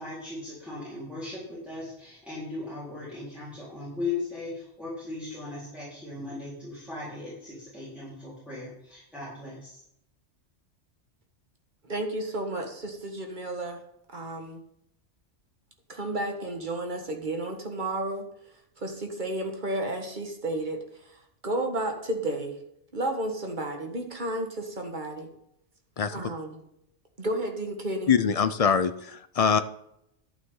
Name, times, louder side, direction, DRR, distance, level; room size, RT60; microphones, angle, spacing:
voice 1, 0.0-9.8, left 3 dB, ahead, -10 dB, 4.1 m, -38 dB
voice 2, 11.8-13.8 14.1-14.6 15.9-18.3 18.8-20.8 21.4-22.6 22.9-25.3 26.1-26.6 27.2-28.1, right 1 dB, 40° right, 4 dB, 1.7 m, -32 dB
voice 3, 28.1-29.6, left 6 dB, 55° left, 12 dB, 0.4 m, -23 dB
11.5 x 9.0 x 3.8 m, 0.77 s
omnidirectional pair, 1.2 m